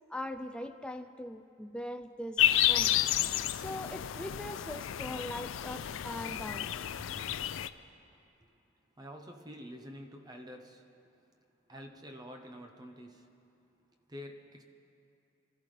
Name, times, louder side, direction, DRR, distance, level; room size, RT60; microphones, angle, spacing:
voice 1, 0.1-3.0 3.5-6.8, left 1 dB, 5° left, 7 dB, 0.3 m, -41 dB
sound 1, 2.4-7.7, left 12 dB, 75° left, 0.4 m, -31 dB
voice 2, 9.0-10.9 11.7-13.3 14.1-14.6, equal, 20° right, 4 dB, 0.8 m, -47 dB
24.5 x 13.5 x 3.3 m, 2.7 s
head